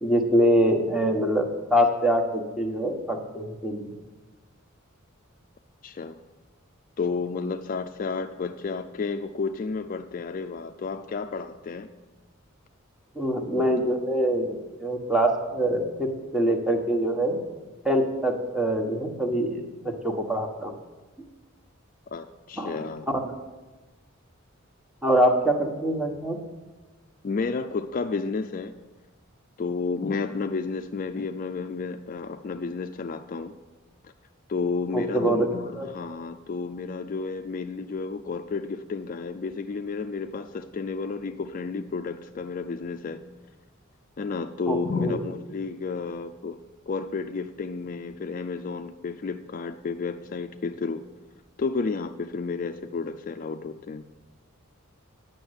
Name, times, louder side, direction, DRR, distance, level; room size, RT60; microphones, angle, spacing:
voice 1, 0.0-3.9 13.1-17.4 17.8-20.7 22.6-22.8 23.1-23.3 25.0-26.4 34.9-35.5 35.8-35.9 44.7-45.2, equal, 5° right, 3 dB, 1.2 m, -24 dB
voice 2, 5.8-6.2 7.0-11.9 13.6-13.7 22.1-23.1 27.2-28.7 29.6-33.5 34.0-34.1 34.5-43.2 44.2-46.6 46.9-51.0 51.6-54.0, left 4 dB, 40° left, 8 dB, 0.4 m, -31 dB
9.5 x 6.6 x 8.0 m, 1.2 s
head